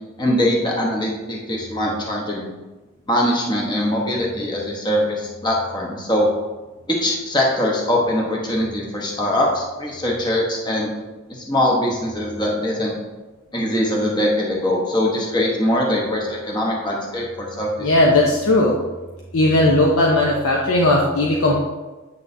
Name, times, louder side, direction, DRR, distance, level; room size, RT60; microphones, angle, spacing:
voice 1, 0.2-2.5 3.1-6.3 6.9-10.9 11.3-13.0 13.5-17.7, left 1 dB, 20° left, -2 dB, 0.9 m, -22 dB
voice 2, 17.8-18.8 19.3-21.6, left 1 dB, 85° left, -2 dB, 0.9 m, -17 dB
8.7 x 6.2 x 2.7 m, 1.2 s
head